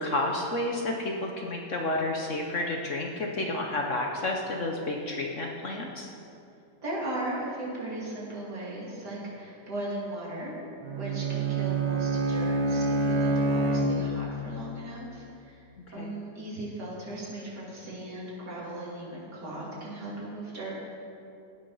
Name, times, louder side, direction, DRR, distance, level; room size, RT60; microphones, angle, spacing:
voice 1, 0.0-6.1 16.0-16.1, left 2 dB, 50° left, 1 dB, 1.1 m, -30 dB
voice 2, 6.8-10.5 11.0-15.6 15.9-20.7, right 1 dB, 65° right, -6 dB, 3.2 m, -37 dB
Bowed string instrument, 10.8-14.5, right 2 dB, 80° right, 1.6 m, -27 dB
16.0 x 6.3 x 5.6 m, 2.7 s
omnidirectional pair, 1.9 m